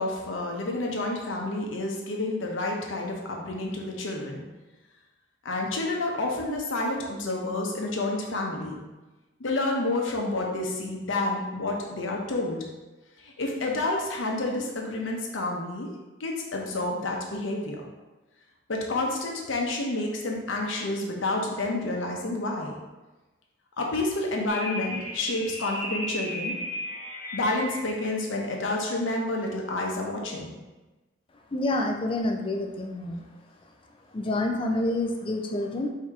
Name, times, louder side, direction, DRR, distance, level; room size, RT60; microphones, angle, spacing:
voice 1, 0.0-4.4 5.4-8.8 9.4-12.6 13.2-15.9 16.2-17.8 18.7-22.7 23.8-26.6 27.3-30.5, left 2 dB, 90° left, 0 dB, 0.8 m, -29 dB
sound 1, 24.5-28.0, left 1 dB, 45° left, 1.3 m, -35 dB
voice 2, 31.5-33.2 34.1-35.9, left 1 dB, 30° left, 3 dB, 0.4 m, -28 dB
4.9 x 2.8 x 3.5 m, 1.1 s
head